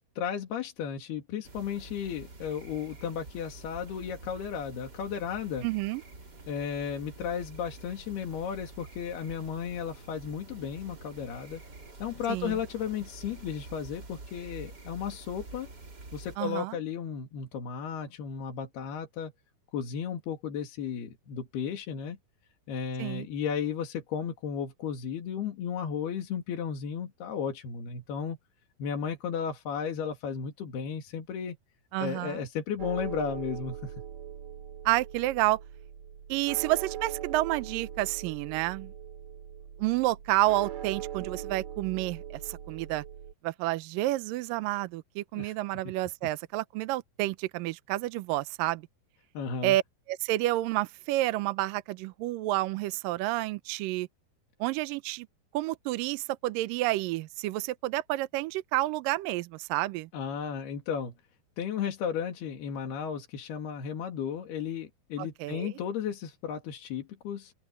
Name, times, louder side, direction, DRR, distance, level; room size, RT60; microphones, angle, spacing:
voice 1, 0.2-5.7 6.5-11.6 12.0-15.7 16.1-19.3 19.7-22.2 22.7-28.4 28.8-31.6 32.0-33.9 45.3-45.6 49.3-49.8 60.1-61.1 61.6-67.5, left 7 dB, 85° left, 4.5 m, -34 dB
sound 1, 1.4-16.4, right 2 dB, 25° right, 3.6 m, -48 dB
voice 2, 5.6-6.0 12.3-12.6 16.4-16.8 23.0-23.3 31.9-32.4 34.9-35.6 36.3-38.9 39.8-43.0 43.4-48.8 49.6-49.8 50.1-54.1 54.6-55.3 55.5-60.1 65.2-65.7, right 17 dB, 75° right, 2.2 m, -30 dB
sound 2, 32.8-43.3, right 10 dB, 60° right, 4.1 m, -41 dB
open air
omnidirectional pair, 4.5 m